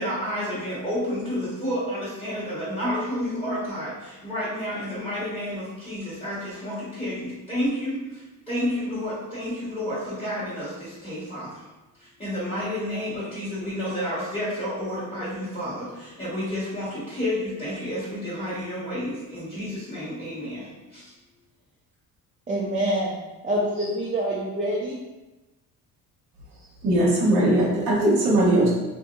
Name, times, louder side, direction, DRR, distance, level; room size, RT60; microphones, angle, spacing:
voice 1, 0.0-11.6 12.0-21.1, equal, 15° left, -12 dB, 1.3 m, -30 dB
voice 2, 22.5-23.1 23.4-25.0, right 1 dB, 20° right, -7 dB, 0.5 m, -26 dB
voice 3, 26.8-28.7, right 1 dB, 75° right, -5 dB, 0.8 m, -19 dB
2.8 x 2.6 x 2.3 m, 1.1 s
cardioid pair, 95°, 35 cm